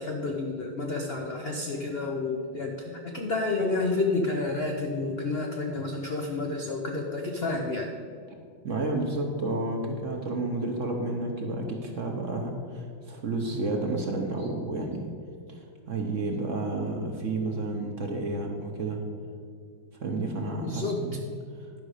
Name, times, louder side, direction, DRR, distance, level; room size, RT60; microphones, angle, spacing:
voice 1, 0.0-7.9 20.6-21.2, left 3 dB, 85° left, 1 dB, 0.5 m, -30 dB
voice 2, 8.6-15.1 15.9-19.0 20.0-21.2, right 2 dB, 50° right, 2 dB, 1.0 m, -31 dB
11.0 x 5.1 x 6.4 m, 2.2 s
omnidirectional pair, 2.2 m